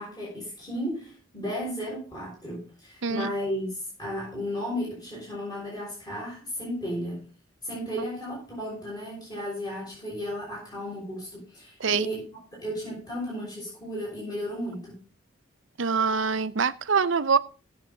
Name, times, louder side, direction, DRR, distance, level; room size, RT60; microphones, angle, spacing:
voice 1, 0.0-7.2 7.6-12.2 12.5-15.0, equal, 20° left, 5.9 m, -34 dB
voice 2, 3.0-3.3 11.8-12.1 15.8-17.4, right 5 dB, 65° right, 0.6 m, -24 dB
17.0 x 7.2 x 3.9 m
head